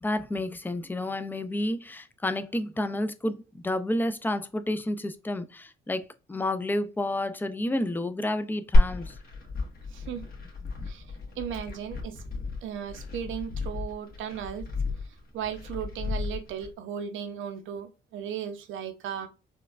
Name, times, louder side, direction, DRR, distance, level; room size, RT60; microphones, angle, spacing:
voice 1, 0.0-9.1, left 1 dB, 10° left, 0.4 m, -30 dB
Glass, 8.7-16.7, left 1 dB, 50° left, 1.3 m, -29 dB
voice 2, 9.9-10.3 10.9-11.1 11.4-12.2 12.6-14.7 15.0-19.3, right 8 dB, 80° right, 0.6 m, -36 dB
4.3 x 2.3 x 2.3 m
cardioid pair, 90°, 20 cm